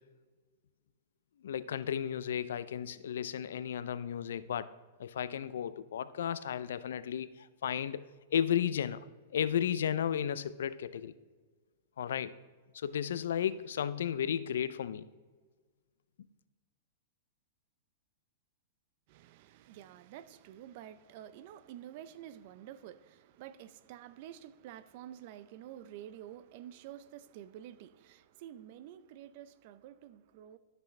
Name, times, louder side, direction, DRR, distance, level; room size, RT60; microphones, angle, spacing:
voice 1, 1.4-4.7 5.0-8.0 8.3-9.0 9.3-11.1 12.0-12.4 12.7-15.1, left 9 dB, 80° left, 0.4 m, -34 dB
voice 2, 19.1-30.6, right 11 dB, 55° right, 0.5 m, -49 dB
13.0 x 6.1 x 3.2 m
hypercardioid pair, 135°, 0 cm